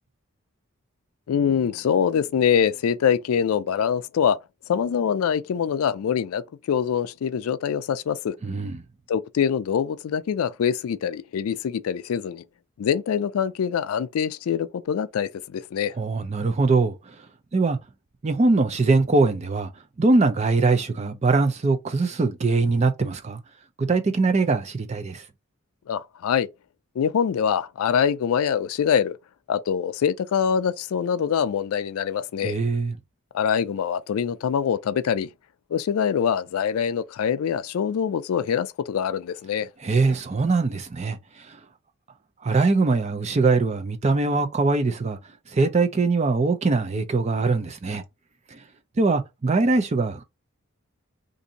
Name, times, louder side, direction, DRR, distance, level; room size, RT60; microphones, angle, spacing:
voice 1, 1.3-4.4 4.7-8.4 9.1-12.4 12.8-15.9 25.9-26.5 27.0-29.2 29.5-32.6 33.3-35.3 35.7-39.7, left 7 dB, 75° left, 0.3 m, -24 dB
voice 2, 8.4-8.8 16.0-16.9 17.5-17.8 18.2-19.7 20.0-23.4 23.8-25.2 32.4-33.0 39.8-41.2 42.4-45.2 45.5-48.0 48.5-48.6 49.0-50.2, right 3 dB, 30° right, 0.4 m, -22 dB
2.6 x 2.6 x 3.9 m
head